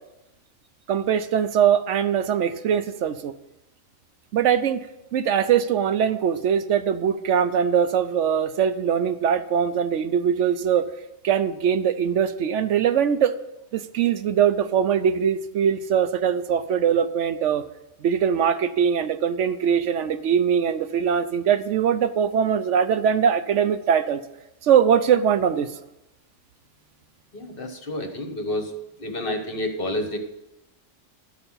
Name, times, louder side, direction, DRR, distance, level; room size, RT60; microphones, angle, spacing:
voice 1, 0.9-3.3 4.3-4.9 5.1-10.9 11.2-13.3 13.7-17.6 18.0-24.2 24.6-25.7, right 8 dB, 70° right, 12 dB, 0.9 m, -22 dB
voice 2, 27.3-28.7 29.0-30.2, left 1 dB, 45° left, 6 dB, 1.3 m, -29 dB
11.5 x 6.8 x 5.6 m, 0.94 s
omnidirectional pair, 1.3 m